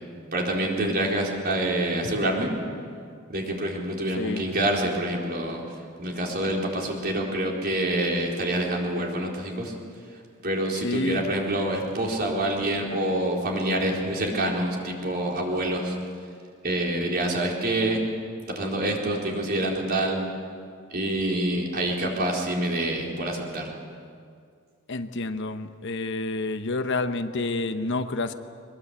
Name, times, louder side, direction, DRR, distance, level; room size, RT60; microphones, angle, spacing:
voice 1, 0.3-2.5 3.3-5.6 6.0-9.7 10.4-15.9 16.6-18.0 18.6-20.2 20.9-23.7, right 1 dB, 45° right, -1 dB, 4.1 m, -26 dB
voice 2, 10.8-11.3 24.9-28.3, left 2 dB, 60° left, 9 dB, 1.0 m, -29 dB
23.0 x 21.0 x 8.3 m, 2.3 s
head